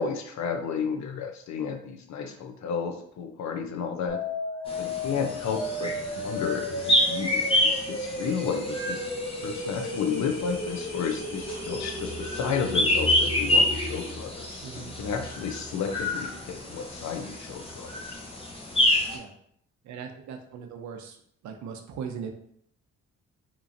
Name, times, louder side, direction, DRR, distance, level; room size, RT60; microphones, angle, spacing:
voice 1, 0.0-4.2 4.8-9.0 9.4-18.2, left 6 dB, 65° left, 5 dB, 0.6 m, -32 dB
sound 1, 4.1-14.1, left 1 dB, 45° left, 1.4 m, -34 dB
sound 2, 4.7-19.2, left 1 dB, 20° left, 0.7 m, -28 dB
voice 2, 14.6-14.9 19.1-19.3 19.9-21.1 21.4-22.3, right 7 dB, 70° right, 4 dB, 0.6 m, -38 dB
3.0 x 2.5 x 2.5 m, 0.68 s
cardioid pair, 90°, 30 cm